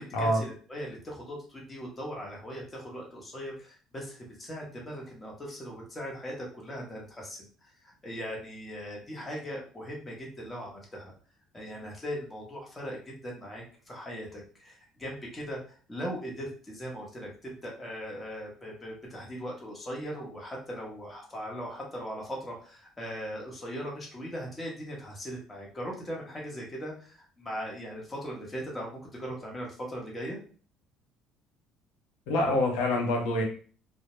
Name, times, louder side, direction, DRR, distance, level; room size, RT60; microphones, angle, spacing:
voice 1, 0.0-7.7 8.0-11.1 11.5-30.4, equal, 20° left, -2 dB, 0.9 m, -39 dB
voice 2, 32.3-33.4, left 1 dB, 85° left, 0 dB, 0.7 m, -26 dB
2.2 x 2.1 x 2.9 m, 0.41 s
cardioid pair, 105°, 0 cm